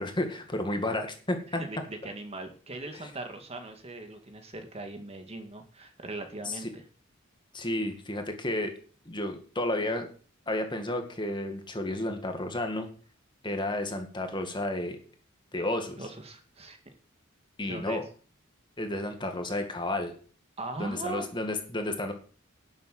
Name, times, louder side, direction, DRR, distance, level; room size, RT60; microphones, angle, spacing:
voice 1, 0.0-1.6 2.9-3.1 6.5-6.7 7.5-8.7 9.1-10.1 10.5-12.9 13.4-15.0 15.5-16.1 17.6-18.0 18.8-20.1 20.8-22.1, left 1 dB, 20° left, 5 dB, 2.0 m, -32 dB
voice 2, 1.6-6.8 16.0-16.8 17.7-18.0 20.6-21.3, right 2 dB, 30° right, 6 dB, 2.0 m, -39 dB
12.0 x 7.4 x 7.7 m, 0.41 s
head